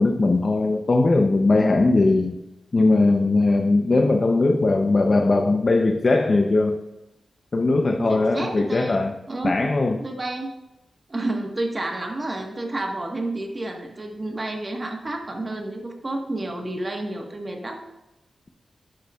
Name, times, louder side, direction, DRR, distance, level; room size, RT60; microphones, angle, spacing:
voice 1, 0.0-2.4 2.7-6.8 7.5-9.2 9.4-10.0, left 2 dB, 40° left, 4 dB, 0.7 m, -19 dB
voice 2, 8.0-9.0 9.3-9.6 10.0-10.5 11.1-17.8, right 2 dB, 30° right, 2 dB, 1.4 m, -30 dB
11.5 x 8.5 x 2.4 m, 0.92 s
wide cardioid pair, 120°, 0 cm